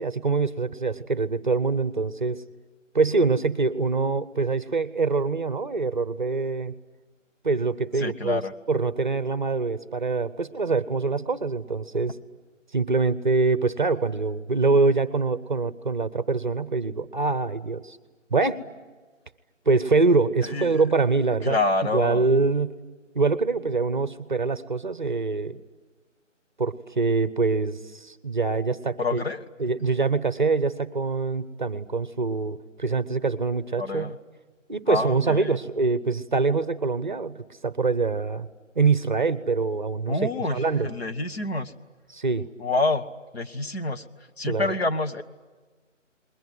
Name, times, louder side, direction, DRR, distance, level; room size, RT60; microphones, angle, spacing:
voice 1, 0.0-2.4 2.9-6.7 7.4-8.4 8.7-12.2 12.7-18.0 18.3-18.6 19.7-22.8 23.1-25.6 26.6-29.2 29.6-34.1 34.7-38.5 38.7-40.9 42.1-42.5 44.5-44.7, right 4 dB, 40° right, 15 dB, 0.8 m, -24 dB
voice 2, 8.0-8.5 20.4-20.8 21.4-22.2 29.0-29.4 33.8-34.2 34.9-35.6 40.1-41.7 42.6-43.0 43.3-44.0 44.4-45.2, left 3 dB, 50° left, 7 dB, 1.4 m, -27 dB
29.0 x 21.5 x 9.3 m, 1.3 s
figure-of-eight pair, 170°, 38 cm